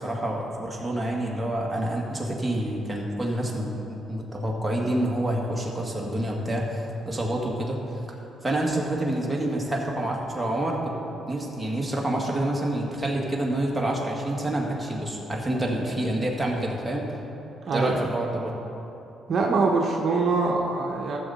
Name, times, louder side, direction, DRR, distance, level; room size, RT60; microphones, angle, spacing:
voice 1, 0.0-7.8 8.4-10.9 11.3-17.0 17.7-18.5, right 1 dB, 10° right, -2 dB, 1.9 m, -27 dB
voice 2, 19.3-21.2, right 3 dB, 55° right, 0 dB, 1.0 m, -23 dB
14.0 x 7.1 x 4.2 m, 2.9 s
cardioid pair, 90°, 0 cm